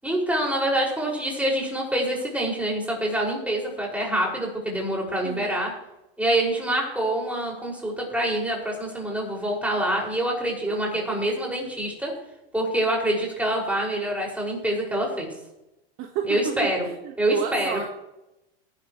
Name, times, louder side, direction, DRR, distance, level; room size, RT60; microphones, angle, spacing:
voice 1, 0.0-5.7 6.2-12.1 12.5-15.3 16.3-16.9 17.2-17.8, right 1 dB, 5° right, -2 dB, 5.7 m, -26 dB
voice 2, 10.7-11.2 16.0-16.3 16.8-17.9, right 9 dB, 45° right, 3 dB, 1.6 m, -32 dB
20.0 x 11.0 x 3.2 m, 0.93 s
hypercardioid pair, 105°, 31 cm